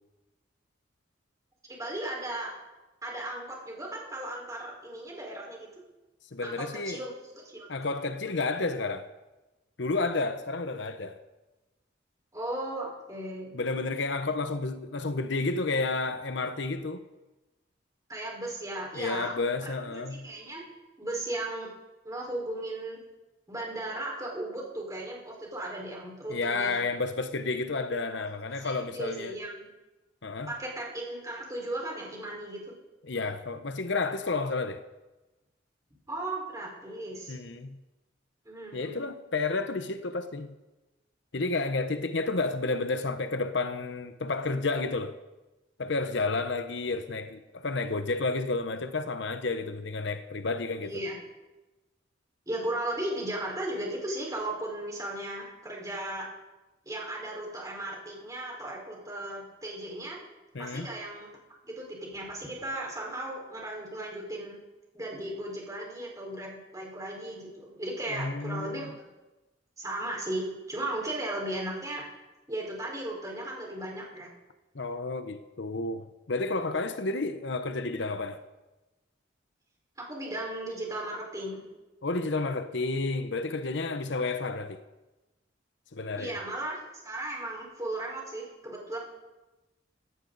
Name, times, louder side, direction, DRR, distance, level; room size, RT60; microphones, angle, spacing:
voice 1, 1.7-2.5 3.0-5.8 6.4-7.7 12.3-13.5 18.1-19.3 19.6-20.6 21.0-21.7 22.0-23.0 23.5-26.8 27.9-29.7 30.5-32.7 36.1-37.3 38.4-38.9 46.0-46.2 50.8-51.2 52.5-56.3 56.8-60.2 60.6-61.3 61.6-64.6 64.9-68.9 69.8-72.0 72.5-74.3 80.0-81.6 86.1-89.0, right 1 dB, 20° right, 4.7 m, -36 dB
voice 2, 6.3-7.0 7.7-9.1 9.8-11.2 13.5-17.0 18.9-20.3 26.3-29.3 30.2-30.5 33.0-34.8 37.3-37.8 38.7-40.6 41.3-45.2 45.8-51.0 60.5-60.9 68.1-68.9 74.7-78.4 82.0-84.8 85.9-86.4, left 3 dB, 65° left, 0.9 m, -31 dB
18.0 x 16.0 x 4.0 m
head